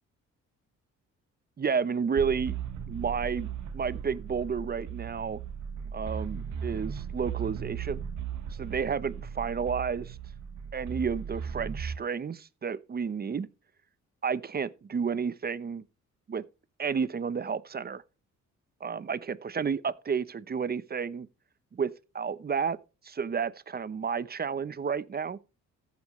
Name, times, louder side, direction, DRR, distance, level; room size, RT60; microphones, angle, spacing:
voice 1, 1.6-2.6 2.9-5.4 5.9-8.0 8.6-10.2 10.7-13.5 14.2-15.8 16.3-16.4 16.8-18.0 18.8-21.3 21.7-22.8 23.0-25.4, right 6 dB, 30° right, 0.8 m, -31 dB
sound 1, 2.2-12.0, right 7 dB, 70° right, 1.5 m, -37 dB
14.5 x 8.3 x 3.2 m
cardioid pair, 90°, 30 cm